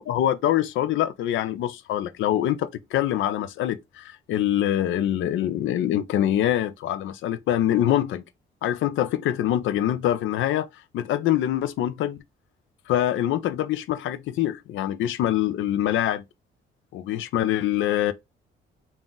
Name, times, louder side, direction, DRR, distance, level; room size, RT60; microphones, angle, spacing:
voice 1, 0.0-8.2 8.6-10.7 10.9-12.2 12.9-16.2 16.9-18.1, left 12 dB, 75° left, 0.5 m, -24 dB
3.7 x 2.4 x 3.8 m
cardioid pair, 90°, 20 cm